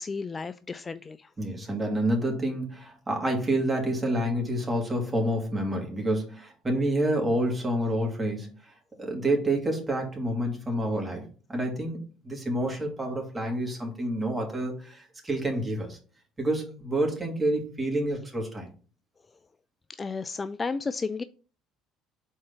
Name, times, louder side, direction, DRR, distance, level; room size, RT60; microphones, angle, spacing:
voice 1, 0.0-1.3 20.0-21.2, left 4 dB, 25° left, 13 dB, 0.3 m, -33 dB
voice 2, 1.4-16.0 16.4-18.7, right 1 dB, 20° right, 1 dB, 2.5 m, -28 dB
4.5 x 4.2 x 5.8 m, 0.39 s
figure-of-eight pair, 55°, 0 cm